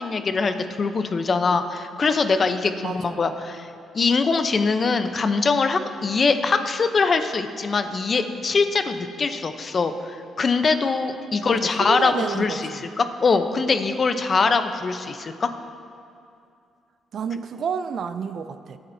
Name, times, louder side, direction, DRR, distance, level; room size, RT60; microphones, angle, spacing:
voice 1, 0.0-3.7 3.9-12.7 13.0-15.5, left 4 dB, 40° left, 8 dB, 0.7 m, -22 dB
voice 2, 2.8-3.2 11.4-12.8 17.1-18.8, right 6 dB, 60° right, 11 dB, 0.5 m, -30 dB
22.5 x 8.8 x 2.7 m, 2.5 s
cardioid pair, 90°, 0 cm